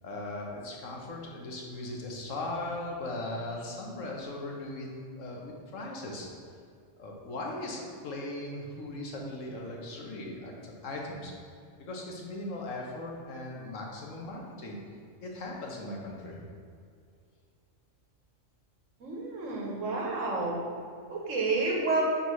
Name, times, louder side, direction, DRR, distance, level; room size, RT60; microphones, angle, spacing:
voice 1, 0.0-4.9 5.2-6.3 7.0-11.3 11.8-14.8 15.2-16.4, left 2 dB, 80° left, -1 dB, 1.3 m, -38 dB
voice 2, 19.0-20.6 21.1-22.0, right 3 dB, 75° right, -2 dB, 1.4 m, -30 dB
4.7 x 4.2 x 5.4 m, 2.3 s
omnidirectional pair, 1.3 m